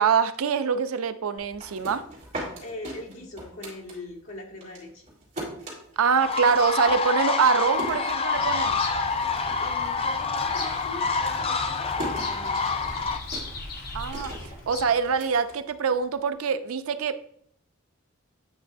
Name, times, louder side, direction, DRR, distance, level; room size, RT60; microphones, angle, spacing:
voice 1, 0.0-2.0 6.0-8.8 13.9-14.3 14.7-17.3, right 6 dB, 85° right, 11 dB, 0.5 m, -24 dB
sound 1, 1.4-4.3 4.6-8.7 9.1-9.7 9.9-16.2, right 1 dB, 35° right, 2.8 m, -40 dB
voice 2, 2.6-5.1 9.6-12.9, left 2 dB, 70° left, -3 dB, 1.8 m, -41 dB
sound 2, 6.2-13.2, left 4 dB, 25° left, 0.4 m, -27 dB
Bird vocalization bird call bird song, 8.3-15.1, left 2 dB, 45° left, 1.1 m, -39 dB
8.7 x 5.4 x 2.6 m, 0.65 s
head